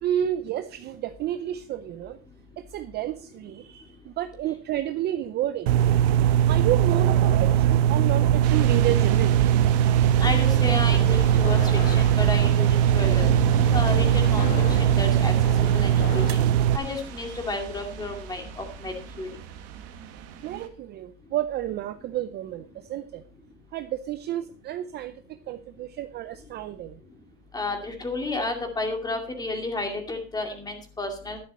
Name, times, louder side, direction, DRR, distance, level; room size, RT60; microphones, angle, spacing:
voice 1, 0.0-2.2 2.7-5.7 6.5-9.4 20.4-23.2 23.7-25.1 25.5-27.0, right 12 dB, 30° right, 11 dB, 0.5 m, -30 dB
sound 1, 5.7-16.8, right 10 dB, 70° right, 0.9 m, -20 dB
sound 2, 8.4-20.7, right 10 dB, 45° right, 1.8 m, -38 dB
sound 3, 9.8-16.5, left 7 dB, 35° left, 1.7 m, -35 dB
voice 2, 10.2-13.3 13.7-15.3 15.7-16.4 16.7-19.3 27.5-31.4, left 2 dB, 10° left, 4 dB, 2.4 m, -31 dB
12.0 x 10.0 x 4.3 m, 0.41 s
supercardioid pair, 140°, 34 cm